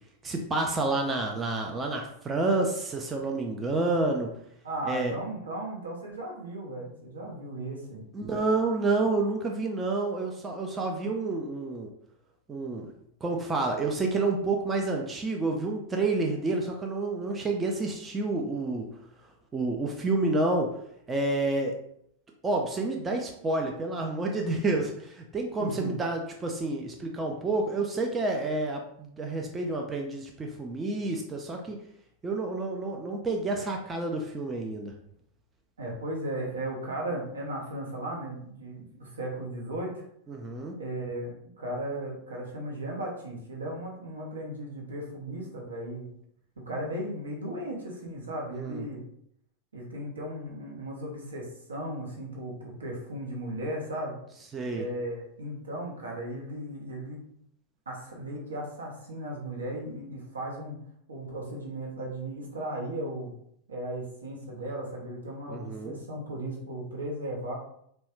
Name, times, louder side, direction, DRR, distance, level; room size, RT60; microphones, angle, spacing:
voice 1, 0.2-4.4 4.9-5.2 8.1-11.9 12.5-12.9 13.2-18.9 19.5-20.8 21.1-21.7 22.4-31.8 32.2-34.9 40.3-40.8 48.5-48.8 54.5-54.8 65.5-66.0, right 2 dB, 15° right, 1 dB, 0.4 m, -29 dB
voice 2, 4.6-8.0 25.6-25.9 35.8-40.0 40.8-46.1 46.6-49.0 49.7-54.2 54.7-57.2 57.9-60.8 61.1-63.3 63.7-67.6, right 1 dB, 70° right, -1 dB, 0.7 m, -36 dB
3.0 x 2.1 x 2.9 m, 0.70 s
figure-of-eight pair, 90°, 0 cm